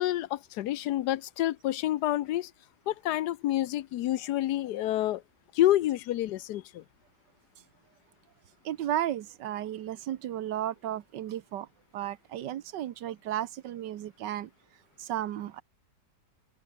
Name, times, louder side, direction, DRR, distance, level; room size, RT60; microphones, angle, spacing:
voice 1, 0.0-2.5 2.9-5.2 5.5-6.8, left 14 dB, 75° left, 1.2 m, -28 dB
voice 2, 8.6-11.7 11.9-14.5 15.0-15.6, right 12 dB, 90° right, 1.5 m, -34 dB
open air
omnidirectional pair, 1.8 m